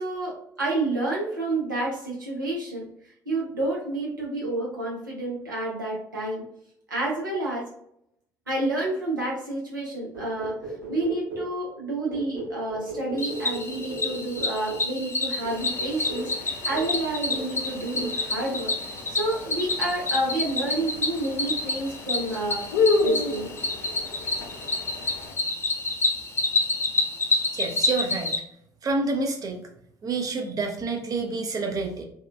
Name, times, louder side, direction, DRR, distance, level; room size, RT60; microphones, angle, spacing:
voice 1, 0.0-2.8 3.3-6.4 6.9-7.6 8.5-10.5 10.9-18.7 19.1-22.6 22.9-23.5, right 2 dB, 85° right, -3 dB, 0.7 m, -29 dB
sound 1, 10.1-11.6 12.1-14.9 15.4-15.6 16.1-16.4 16.7-17.0 17.3-17.6 17.9-18.2, right 1 dB, 70° right, 1.2 m, -36 dB
Cricket, 13.2-28.4, left 2 dB, 25° left, 0.6 m, -28 dB
sound 2, 15.5-25.3, left 4 dB, 70° left, 0.5 m, -32 dB
voice 2, 27.5-28.3 28.8-29.6 30.0-32.0, right 3 dB, 35° right, 3 dB, 0.6 m, -28 dB
2.8 x 2.2 x 2.3 m, 0.71 s
figure-of-eight pair, 50°, 10 cm